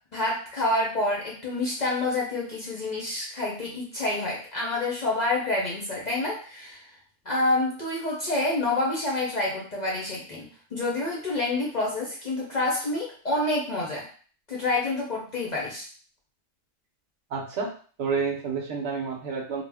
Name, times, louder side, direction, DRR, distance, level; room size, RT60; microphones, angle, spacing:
voice 1, 0.1-6.9 7.3-14.0 14.5-15.9, left 2 dB, 50° left, -4 dB, 0.6 m, -28 dB
voice 2, 17.3-17.7 18.0-19.6, right 5 dB, 65° right, 1 dB, 0.8 m, -29 dB
2.4 x 2.0 x 3.3 m, 0.42 s
omnidirectional pair, 1.3 m